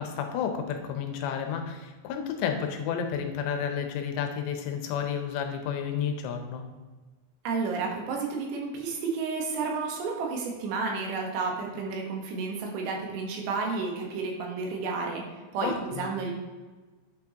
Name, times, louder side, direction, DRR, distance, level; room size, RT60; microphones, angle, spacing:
voice 1, 0.0-6.6 15.6-16.1, left 7 dB, 80° left, 5 dB, 3.0 m, -31 dB
voice 2, 7.4-15.2 15.5-16.3, right 4 dB, 80° right, 0 dB, 3.3 m, -31 dB
9.1 x 5.9 x 2.8 m, 1.3 s
omnidirectional pair, 5.1 m